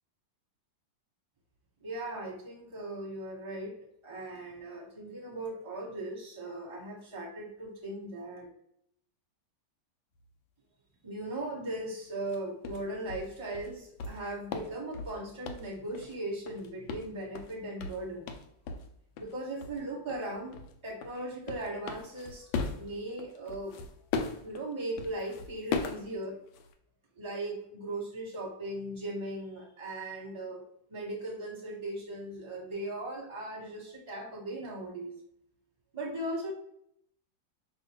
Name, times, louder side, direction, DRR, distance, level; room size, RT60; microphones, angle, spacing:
voice 1, 1.8-3.7 4.0-8.5 11.0-18.2 19.2-20.6 20.8-22.5 22.7-23.8 24.4-26.4 27.1-30.6 30.9-35.1 35.9-36.5, right 1 dB, 15° right, -4 dB, 1.2 m, -38 dB
sound 1, 12.3-12.4 12.6-16.2 16.5-18.9 19.2-19.4 19.6-19.8 20.1-26.7, left 5 dB, 80° left, 1.3 m, -38 dB
5.8 x 2.5 x 2.9 m, 0.73 s
omnidirectional pair, 2.1 m